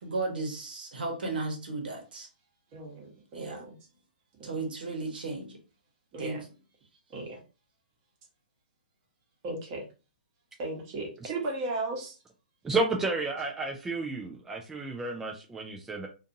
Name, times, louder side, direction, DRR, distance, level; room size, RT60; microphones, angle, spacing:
voice 1, 0.0-2.3 3.3-3.6 4.4-5.6 6.2-6.4, right 3 dB, 70° right, 2 dB, 1.0 m, -34 dB
voice 2, 2.7-3.8 4.4-4.5 6.1-6.4 7.1-7.4 9.4-9.8 10.6-12.2, right 2 dB, 35° right, 0 dB, 1.1 m, -35 dB
voice 3, 12.6-16.1, right 3 dB, 10° right, 0 dB, 0.4 m, -31 dB
2.5 x 2.5 x 2.6 m, 0.33 s
hypercardioid pair, 130°, 5 cm